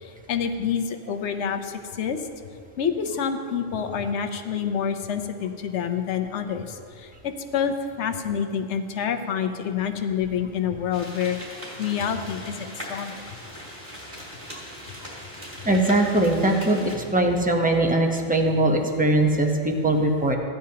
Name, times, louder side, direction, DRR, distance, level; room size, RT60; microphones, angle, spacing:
voice 1, 0.0-2.2 2.8-11.4 11.8-13.2, left 7 dB, 75° left, 7 dB, 1.0 m, -27 dB
sound 1, 10.9-17.0, equal, 45° right, 3.5 m, -40 dB
voice 2, 15.6-20.4, right 1 dB, 10° right, 2 dB, 0.7 m, -21 dB
15.5 x 10.0 x 2.8 m, 2.2 s
omnidirectional pair, 1.2 m